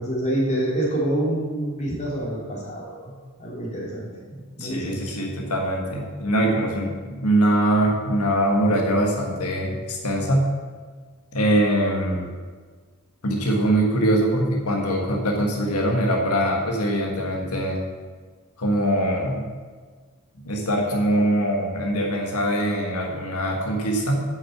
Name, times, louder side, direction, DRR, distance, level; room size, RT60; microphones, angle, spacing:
voice 1, 0.0-3.1 3.4-5.0, right 1 dB, 30° left, -4 dB, 3.2 m, -27 dB
voice 2, 4.6-10.5 11.3-12.3 13.2-17.8 18.6-19.5 20.5-24.2, right 1 dB, 90° left, 0 dB, 1.6 m, -22 dB
9.2 x 6.5 x 7.2 m, 1.5 s
head